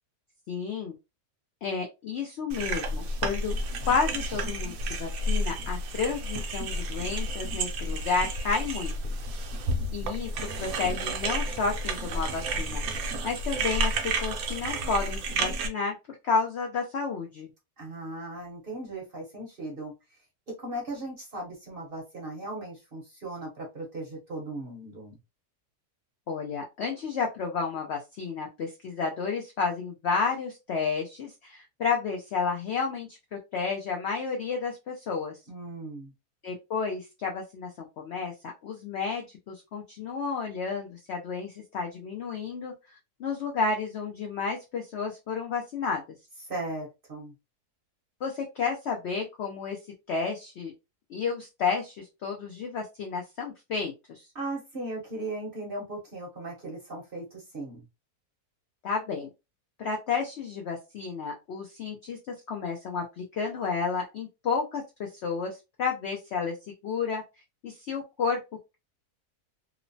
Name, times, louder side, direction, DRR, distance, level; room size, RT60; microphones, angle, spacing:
voice 1, 0.5-0.9 1.6-3.6 3.9-8.9 9.9-12.8 13.2-15.9 16.2-17.5 26.3-35.4 36.4-42.7 43.2-46.0 48.2-49.8 50.1-50.7 51.1-54.3 58.8-59.3 59.8-66.6 66.8-67.2 67.6-68.4, left 5 dB, 75° left, 1 dB, 0.6 m, -31 dB
sound 1, 2.5-15.7, right 1 dB, 70° right, 0.9 m, -31 dB
voice 2, 17.8-19.9 20.5-25.2 35.5-36.1 46.5-47.3 54.3-57.8, right 2 dB, 45° right, -1 dB, 0.8 m, -37 dB
3.0 x 2.0 x 2.5 m, 0.25 s
omnidirectional pair, 1.7 m